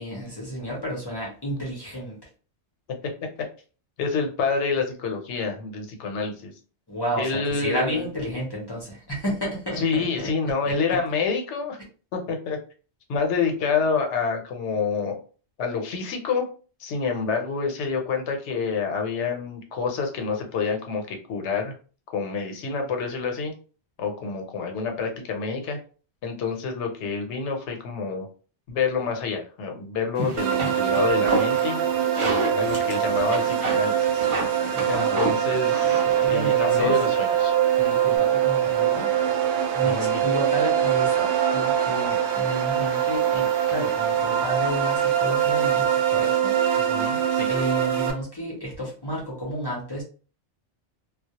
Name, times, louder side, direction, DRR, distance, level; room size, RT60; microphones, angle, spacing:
voice 1, 0.0-2.2 6.9-11.0 34.7-35.2 36.2-37.0 37.8-39.2 39.5-46.6 47.5-50.0, equal, 30° left, -3 dB, 0.5 m, -31 dB
voice 2, 4.0-6.5 7.2-8.1 9.8-11.8 12.1-12.6 13.1-15.2 15.6-16.5 16.8-21.7 22.1-23.5 24.0-25.8 26.2-28.3 28.7-31.8 32.2-34.2 34.9-36.0 36.3-37.5 39.8-40.2 46.7-47.5, left 5 dB, 80° left, 4 dB, 0.9 m, -28 dB
sound 1, 30.1-38.2, right 1 dB, 35° right, 0.6 m, -32 dB
sound 2, 30.4-48.1, right 10 dB, 75° right, 0.8 m, -23 dB
2.2 x 2.0 x 2.8 m, 0.38 s
omnidirectional pair, 1.2 m